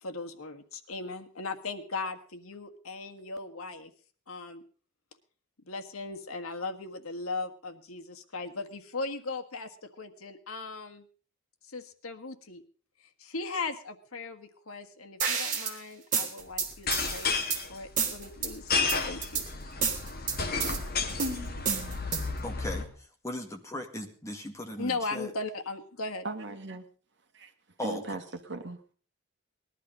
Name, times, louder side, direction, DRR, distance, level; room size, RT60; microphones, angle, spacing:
voice 1, 0.0-3.9 4.3-4.6 5.7-11.0 11.7-12.6 13.2-17.4 17.7-18.8 19.0-19.4 24.8-26.2, left 3 dB, 90° left, 6 dB, 1.6 m, -38 dB
sound 1, 15.2-15.7 16.1-17.6 18.0-18.5 18.9-19.4 19.8-20.8 21.2-22.4, right 6 dB, 40° right, 3.2 m, -30 dB
sound 2, 16.7-22.8, left 4 dB, 45° left, 2.0 m, -32 dB
voice 2, 22.4-22.9 23.2-25.3 27.8-28.0, left 1 dB, 15° left, 3 dB, 2.0 m, -37 dB
voice 3, 26.2-26.9 27.3-27.5 27.8-28.8, right 3 dB, 55° right, 6 dB, 1.9 m, -38 dB
19.5 x 12.0 x 5.3 m, 0.43 s
head